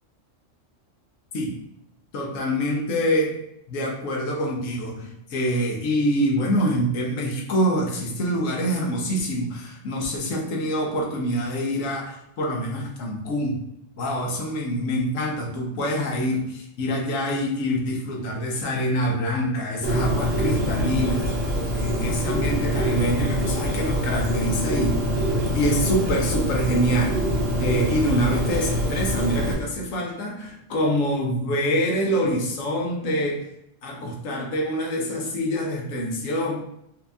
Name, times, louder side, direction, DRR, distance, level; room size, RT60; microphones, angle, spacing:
voice 1, 2.1-3.4 3.7-13.6 14.0-25.0 25.5-27.2 27.6-33.5 33.8-36.6, equal, 85° left, 0 dB, 1.1 m, -25 dB
Bird, 19.8-29.5, equal, 75° right, 1.2 m, -25 dB
4.3 x 2.3 x 2.6 m, 0.78 s
omnidirectional pair, 1.3 m